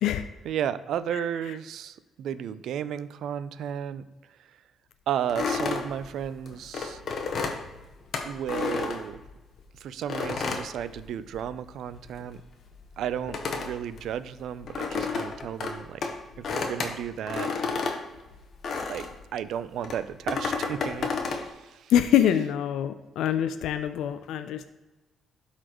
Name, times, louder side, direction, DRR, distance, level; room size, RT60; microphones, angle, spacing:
voice 1, 0.4-4.0 5.1-7.0 8.2-9.2 9.8-12.4 13.0-16.1 16.4-17.5 18.9-19.1 19.3-21.9, right 9 dB, 75° right, 14 dB, 0.4 m, -33 dB
sound 1, 5.3-9.6 10.1-11.6 11.8-19.2 19.8-21.5, left 4 dB, 60° left, 1.0 m, -32 dB
voice 2, 21.9-24.7, left 10 dB, 85° left, 10 dB, 0.4 m, -24 dB
12.5 x 4.2 x 3.0 m, 1.1 s
cardioid pair, 90°, 0 cm